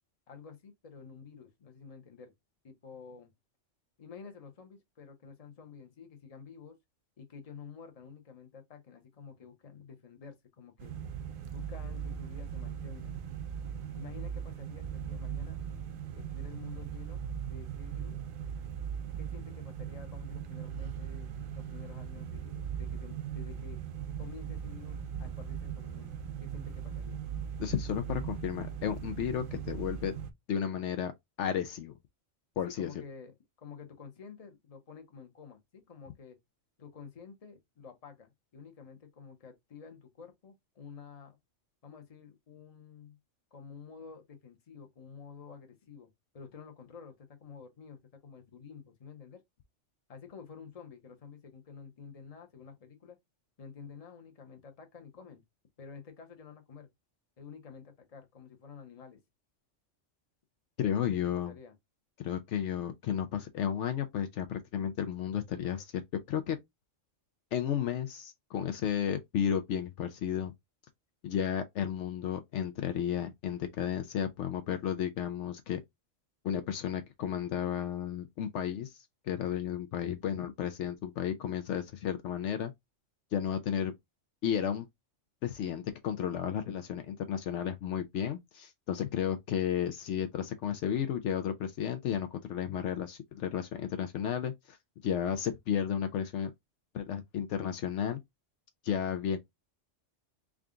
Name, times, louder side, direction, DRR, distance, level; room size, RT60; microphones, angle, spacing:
voice 1, 0.3-2.3 2.6-3.3 4.0-6.8 7.2-10.9 11.5-13.2 13.9-15.6 16.1-18.2 19.1-23.8 24.2-27.2 32.7-36.4 36.8-41.4 41.8-43.2 43.5-49.4 50.1-53.2 53.6-55.4 55.8-56.9 57.4-59.2 60.8-61.8, left 6 dB, 35° left, 0.8 m, -50 dB
sound 1, 10.8-30.3, right 8 dB, 60° right, 0.6 m, -39 dB
voice 2, 27.6-30.1 30.5-31.1 31.4-31.9 32.6-32.9 60.8-61.5 62.2-65.8 66.3-66.6 67.5-70.5 71.2-75.8 76.4-78.9 79.2-82.7 83.3-83.9 84.4-84.9 85.4-94.8 95.0-96.5 96.9-98.2 98.8-99.4, left 9 dB, 70° left, 0.8 m, -33 dB
3.6 x 2.3 x 3.7 m
omnidirectional pair, 1.3 m